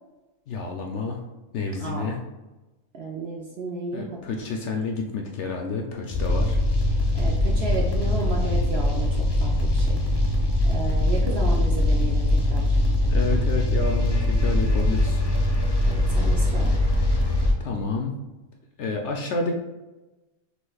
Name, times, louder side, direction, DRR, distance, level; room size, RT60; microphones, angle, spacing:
voice 1, 0.5-1.2 1.5-2.2 3.9-6.6 13.1-15.2 17.6-18.1 18.8-19.5, left 3 dB, 65° left, 2 dB, 0.8 m, -29 dB
voice 2, 1.8-2.2 2.9-4.2 7.1-10.0 10.6-12.8 15.8-16.7, right 2 dB, 60° right, 0 dB, 0.7 m, -33 dB
sound 1, 6.1-17.5, left 1 dB, 35° left, 0.4 m, -22 dB
6.2 x 3.2 x 2.3 m, 1.1 s
omnidirectional pair, 1.5 m